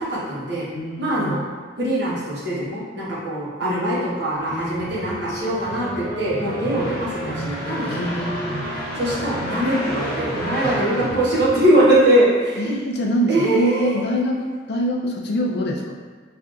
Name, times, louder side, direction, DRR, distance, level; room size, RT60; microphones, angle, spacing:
voice 1, 0.0-0.7 1.0-1.4 1.8-8.2 8.9-12.8 13.3-14.0, right 1 dB, 60° right, -8 dB, 1.1 m, -22 dB
voice 2, 0.7-1.4 3.6-4.1 4.5-4.9 7.9-8.6 10.6-10.8 12.6-16.0, equal, 55° left, 0 dB, 0.4 m, -25 dB
sound 1, 4.4-12.0, equal, ahead, 1.4 m, -31 dB
sound 2, 5.0-12.7, equal, 15° left, 0.7 m, -35 dB
5.4 x 2.4 x 2.5 m, 1.5 s
head